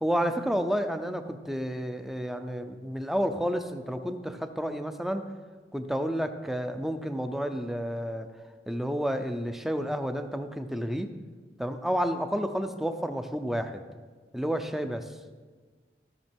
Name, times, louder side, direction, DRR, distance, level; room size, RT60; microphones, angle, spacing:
voice 1, 0.0-5.3 5.7-8.3 8.7-11.1 11.6-13.8 14.3-15.1, equal, ahead, 8 dB, 0.5 m, -30 dB
15.0 x 6.7 x 4.5 m, 1.4 s
head